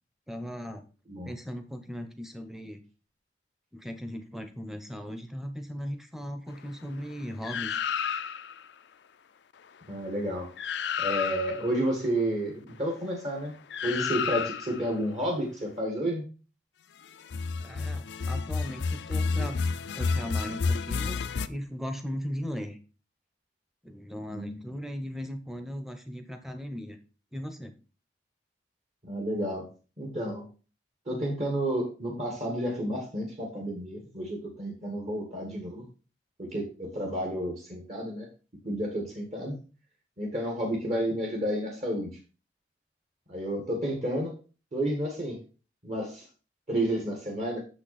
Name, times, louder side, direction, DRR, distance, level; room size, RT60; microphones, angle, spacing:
voice 1, 0.3-0.8 1.2-2.8 3.7-7.8 17.6-19.6 19.9-22.8 23.8-27.0 27.3-27.7, equal, ahead, 8 dB, 0.8 m, -38 dB
sound 1, 7.4-8.6 10.2-10.3 10.6-11.7 13.7-14.9 17.2-21.5, left 5 dB, 85° left, 0.4 m, -30 dB
voice 2, 9.9-10.5 11.0-13.5 13.8-16.2 24.3-24.5 29.0-29.7 30.0-30.5 31.0-35.8 36.4-38.3 38.6-39.5 40.2-42.1 43.3-44.4 44.7-45.4 45.8-46.3 46.7-47.6, right 1 dB, 40° right, -1 dB, 1.7 m, -31 dB
6.7 x 5.9 x 4.2 m, 0.34 s
head